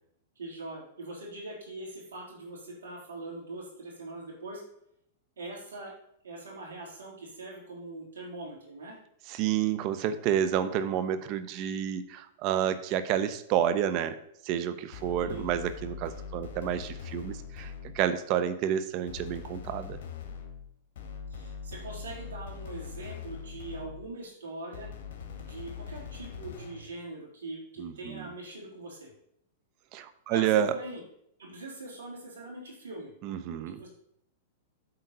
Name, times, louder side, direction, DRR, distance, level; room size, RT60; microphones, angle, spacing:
voice 1, 0.4-4.6 5.4-5.9 6.2-9.0 15.2-15.4 21.3-24.9 25.4-29.1 30.3-31.0 31.4-33.9, right 2 dB, 85° right, -3 dB, 3.8 m, -42 dB
voice 2, 9.3-14.2 14.4-20.0 27.8-28.3 29.9-30.7 33.2-33.8, right 10 dB, 45° right, 10 dB, 0.9 m, -29 dB
sound 1, 14.9-18.2 19.1-24.2 24.7-26.9, left 6 dB, 65° left, 1.8 m, -42 dB
8.2 x 4.1 x 6.8 m, 0.74 s
hypercardioid pair, 115°, 0 cm